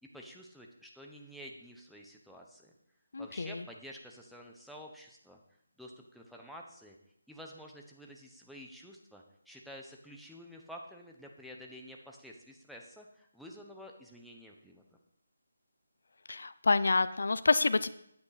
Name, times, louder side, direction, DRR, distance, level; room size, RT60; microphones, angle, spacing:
voice 1, 0.0-2.7 3.2-5.4 5.8-7.0 7.3-14.8, equal, ahead, -1 dB, 0.8 m, -50 dB
voice 2, 3.1-3.6 16.3-17.9, left 3 dB, 70° left, 14 dB, 0.5 m, -28 dB
9.5 x 8.5 x 4.1 m, 0.72 s
figure-of-eight pair, 165°, 0 cm